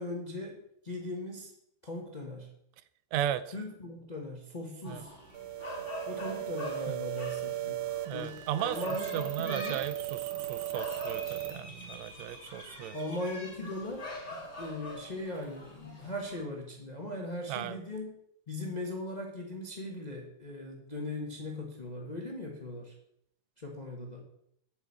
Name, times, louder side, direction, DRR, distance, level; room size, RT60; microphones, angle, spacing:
voice 1, 0.0-1.5 1.8-2.5 3.5-5.1 6.1-7.8 8.1-9.9 12.9-14.1 14.6-18.2 18.5-22.9 23.6-24.2, left 1 dB, 70° left, 0 dB, 0.4 m, -39 dB
voice 2, 3.1-3.4 4.8-5.0 6.9-7.0 8.1-8.8 9.1-13.0 17.5-17.8, right 11 dB, 75° right, 13 dB, 1.8 m, -35 dB
sound 1, 4.8-16.4, left 1 dB, 20° left, 3.7 m, -44 dB
sound 2, 5.3-11.5, right 15 dB, 90° right, 2.5 m, -37 dB
9.0 x 6.1 x 8.2 m, 0.74 s
omnidirectional pair, 3.5 m